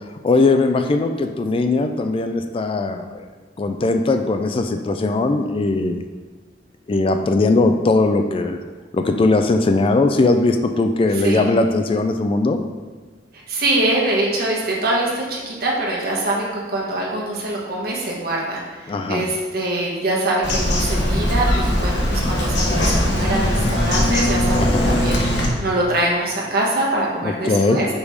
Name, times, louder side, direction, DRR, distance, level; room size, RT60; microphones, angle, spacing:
voice 1, 0.2-3.3 3.6-6.0 6.9-8.6 8.9-12.6 18.9-19.3 24.6-25.0 27.2-27.8, left 3 dB, 30° left, 7 dB, 0.3 m, -19 dB
voice 2, 11.1-11.5 13.5-27.9, right 1 dB, 60° right, -3 dB, 1.4 m, -23 dB
Bird vocalization bird call bird song, 20.4-25.5, left 1 dB, 85° left, 1.3 m, -20 dB
5.2 x 4.8 x 5.0 m, 1.4 s
head